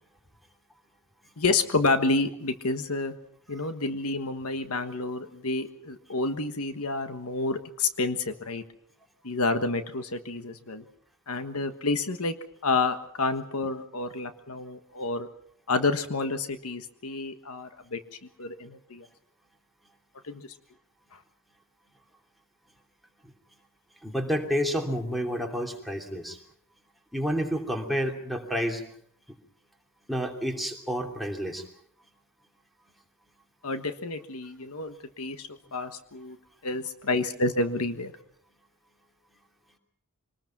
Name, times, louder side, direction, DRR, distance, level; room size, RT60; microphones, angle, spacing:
voice 1, 1.4-3.1 3.5-8.6 9.2-10.8 11.3-12.3 12.6-15.3 15.7-18.0 18.4-19.0 20.2-20.5 33.6-36.4 36.6-38.1, left 3 dB, 70° left, 8 dB, 1.4 m, -29 dB
voice 2, 24.0-26.4 27.1-28.8 30.1-31.6, equal, ahead, 1 dB, 3.0 m, -29 dB
25.5 x 20.0 x 6.0 m, 0.67 s
head